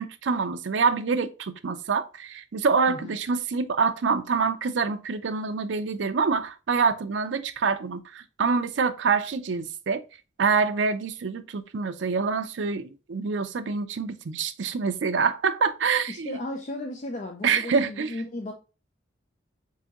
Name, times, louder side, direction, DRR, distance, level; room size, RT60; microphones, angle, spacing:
voice 1, 0.0-10.0 10.4-16.4 17.4-18.1, right 5 dB, 75° right, 0.5 m, -26 dB
voice 2, 16.1-18.5, left 1 dB, 40° left, 0.5 m, -35 dB
4.6 x 3.5 x 2.9 m
head